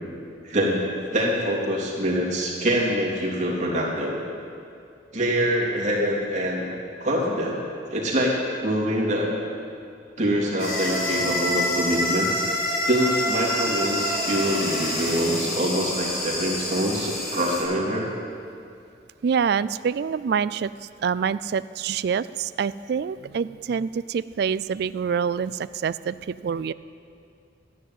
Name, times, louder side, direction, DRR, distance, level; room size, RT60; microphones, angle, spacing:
voice 1, 0.4-0.8 1.1-4.2 5.1-6.7 7.0-7.6 7.9-9.3 10.2-12.3 12.9-18.1, equal, 40° right, -3 dB, 3.2 m, -24 dB
sound 1, 10.6-17.6, left 1 dB, 55° left, 5.1 m, -27 dB
voice 2, 19.2-20.7 21.0-26.7, right 6 dB, 60° right, 16 dB, 0.3 m, -26 dB
13.5 x 10.5 x 9.4 m, 2.5 s
head